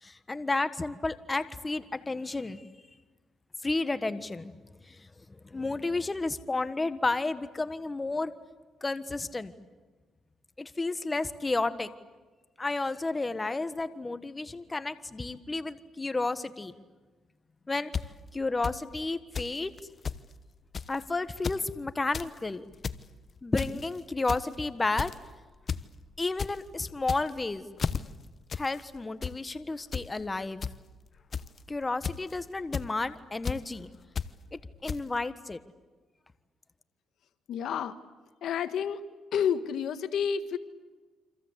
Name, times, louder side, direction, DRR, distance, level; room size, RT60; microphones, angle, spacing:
voice 1, 0.0-2.6 3.6-4.5 4.9-8.3 8.8-9.5 10.6-11.9 12.6-16.7 17.7-17.9 18.3-19.7 20.9-22.7 23.4-25.1 26.2-27.7 28.5-30.6 31.7-33.9 34.5-35.6, left 3 dB, 20° left, 12 dB, 1.4 m, -32 dB
sound 1, 17.9-18.0 18.6-18.7 19.3-19.5 19.8-19.9 20.0-20.2 20.7-21.0 21.3-21.6 22.0-22.3 22.7-23.0 23.6-23.9 24.3-24.5 25.0-25.2 25.7-25.8 26.1-26.5 27.0-27.4 27.8-28.0 28.5-28.7 29.0-29.3 29.9-30.1 30.6-30.7 31.3-31.6 32.0-32.3 32.7-32.9 33.4-33.6 34.2-34.3 34.9-35.0, left 6 dB, 40° left, 1.0 m, -32 dB
voice 2, 37.5-38.0 38.4-39.0 39.3-40.6, left 8 dB, 70° left, 11 dB, 1.6 m, -29 dB
28.0 x 26.0 x 8.2 m, 1.3 s
cardioid pair, 90°, 0 cm